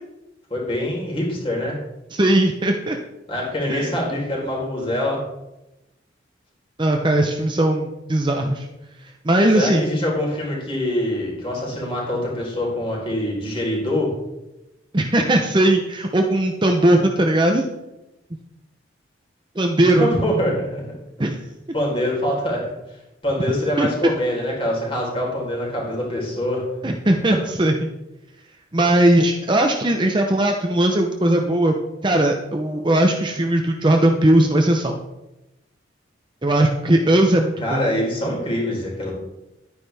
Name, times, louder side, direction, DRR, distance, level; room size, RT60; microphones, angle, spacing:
voice 1, 0.5-1.8 3.3-5.2 9.5-14.1 20.0-20.8 21.7-26.7 27.3-27.4 37.6-39.1, left 1 dB, 30° left, -3 dB, 3.9 m, -24 dB
voice 2, 2.1-3.0 3.7-3.9 6.8-8.7 9.2-9.9 14.9-17.6 19.6-20.1 21.2-21.4 23.8-23.9 26.8-27.9 28.7-31.8 32.0-35.0 36.4-38.0, right 1 dB, 25° right, 3 dB, 0.7 m, -18 dB
11.5 x 9.7 x 3.4 m, 0.95 s
head